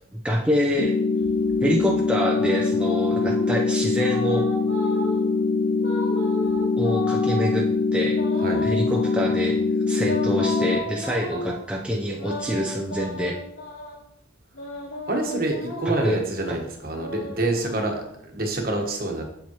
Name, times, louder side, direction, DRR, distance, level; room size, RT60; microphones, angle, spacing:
voice 1, 0.1-0.9 1.6-4.5 6.8-7.7 7.9-8.2 8.6-9.6 9.9-13.4 15.9-16.2 16.5-16.6, equal, 5° right, -1 dB, 0.6 m, -26 dB
sound 1, 0.8-10.8, left 4 dB, 70° left, 0.5 m, -23 dB
sound 2, 1.2-3.5 3.9-5.2 5.8-7.5 8.1-9.5 10.0-11.6 12.1-14.0 14.5-16.2 16.8-18.2, left 1 dB, 85° left, 2.4 m, -34 dB
voice 2, 15.1-19.2, right 2 dB, 45° right, 2 dB, 1.3 m, -27 dB
7.4 x 7.0 x 3.0 m, 0.77 s
head